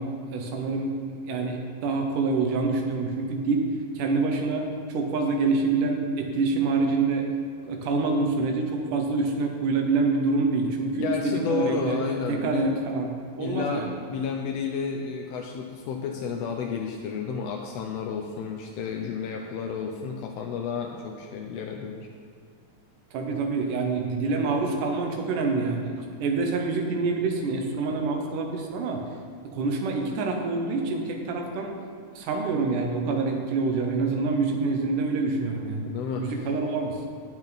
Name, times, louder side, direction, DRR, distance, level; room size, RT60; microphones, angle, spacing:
voice 1, 0.0-3.7 4.0-4.7 4.9-7.3 7.6-12.0 12.3-13.1 13.4-13.9 23.1-29.0 29.5-31.7 32.1-35.8 36.2-37.0, right 3 dB, 85° right, 2 dB, 2.7 m, -26 dB
voice 2, 10.9-12.7 13.4-22.1 35.9-36.5, left 6 dB, 80° left, 2 dB, 1.5 m, -31 dB
17.5 x 6.0 x 4.1 m, 2.2 s
omnidirectional pair, 3.6 m